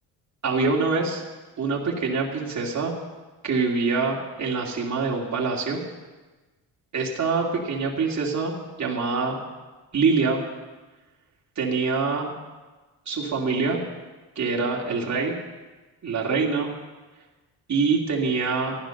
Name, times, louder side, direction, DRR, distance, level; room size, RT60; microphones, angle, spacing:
voice 1, 0.4-1.2 1.6-2.9 3.4-5.8 6.9-9.4 9.9-10.4 11.6-12.3 13.1-13.8 14.4-15.4 16.0-16.7 17.7-18.8, right 4 dB, 45° right, -2 dB, 2.6 m, -25 dB
14.0 x 11.5 x 6.5 m, 1.2 s
cardioid pair, 85°, 39 cm